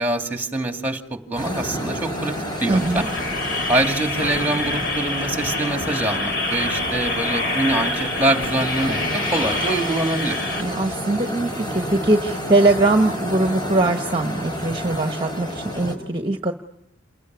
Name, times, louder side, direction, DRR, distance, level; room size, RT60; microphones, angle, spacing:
voice 1, 0.0-3.0 3.7-10.4, right 2 dB, 10° right, 5 dB, 2.5 m, -24 dB
sound 1, 1.4-16.0, equal, 20° left, 5.4 m, -30 dB
sound 2, 2.6-10.6, left 2 dB, 55° left, 3.9 m, -27 dB
voice 2, 2.7-3.1 10.6-16.5, right 2 dB, 25° right, 6 dB, 1.2 m, -21 dB
28.5 x 21.0 x 9.5 m, 0.80 s
head